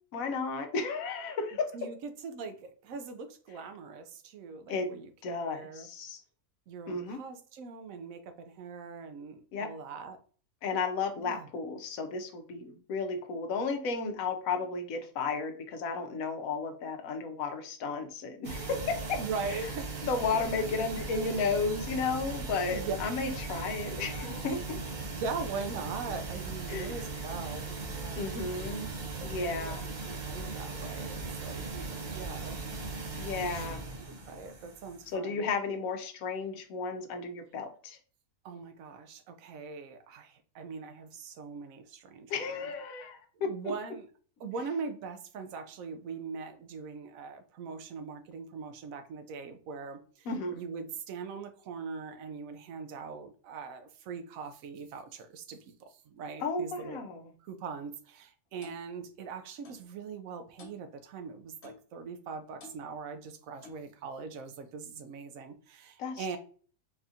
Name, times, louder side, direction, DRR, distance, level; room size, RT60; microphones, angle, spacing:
voice 1, 0.1-1.9 4.7-6.2 6.9-7.2 9.5-9.7 10.6-19.2 19.5-19.7 20.0-24.8 26.7-27.0 28.1-28.9 29.2-29.8 33.2-33.8 35.1-38.0 42.3-43.7 50.3-50.6 56.4-57.3 66.0-66.4, left 4 dB, 75° left, 1.1 m, -33 dB
voice 2, 1.7-5.1 5.5-5.9 6.7-10.2 11.2-11.5 19.2-19.9 22.7-22.9 25.1-28.3 29.2-29.7 30.0-32.6 33.4-33.7 34.1-35.5 38.4-42.3 43.4-44.1 44.4-55.7 56.1-57.0 57.5-66.4, right 5 dB, 75° right, 1.0 m, -41 dB
sound 1, 18.4-35.1, right 3 dB, 45° right, 0.7 m, -38 dB
Clock, 58.6-58.8 59.6-59.9 60.6-60.8 61.6-61.9 62.6-62.8 63.6-63.9, left 4 dB, 55° left, 1.0 m, -51 dB
4.1 x 2.4 x 2.7 m
omnidirectional pair, 1.5 m